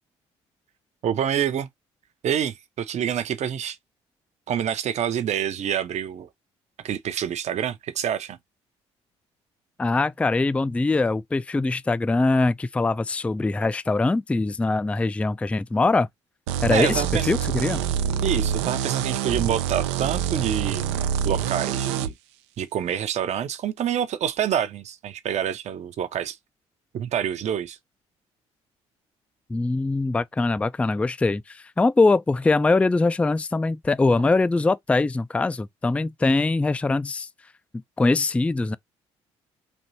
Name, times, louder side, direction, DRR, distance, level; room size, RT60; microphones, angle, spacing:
voice 1, 1.0-1.7 2.2-3.8 4.5-6.3 6.8-8.4 16.7-17.3 18.2-22.1 22.6-26.4 26.9-27.8, right 9 dB, 55° right, 0.7 m, -27 dB
voice 2, 9.8-16.1 16.6-17.8 29.5-37.3 38.0-38.8, left 3 dB, 10° left, 0.3 m, -22 dB
sound 1, 16.5-22.1, right 9 dB, 80° right, 0.4 m, -26 dB
4.3 x 3.0 x 2.7 m
hypercardioid pair, 50°, 14 cm